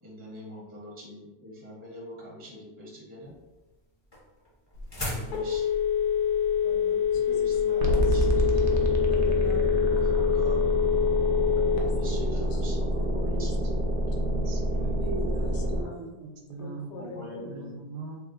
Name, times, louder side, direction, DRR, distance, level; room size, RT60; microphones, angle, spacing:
voice 1, 0.0-3.4 5.1-5.7 7.1-8.9 9.7-10.6 11.8-13.8 14.9-15.9 16.9-17.9, equal, 10° right, -5 dB, 0.6 m, -43 dB
sound 1, 3.2-8.4, left 1 dB, 25° left, 0.6 m, -40 dB
Telephone, 4.8-12.1, left 8 dB, 85° left, 1.1 m, -25 dB
voice 2, 6.6-7.3 7.7-8.0 9.1-10.4 11.6-13.5 15.0-16.1 16.6-17.6, left 1 dB, 60° left, 2 dB, 0.7 m, -40 dB
sound 2, 7.8-15.8, right 1 dB, 85° right, 0.4 m, -27 dB
voice 3, 14.0-15.0 16.0-18.2, right 4 dB, 65° right, -1 dB, 1.0 m, -41 dB
3.3 x 2.0 x 3.7 m, 1.1 s
omnidirectional pair, 1.6 m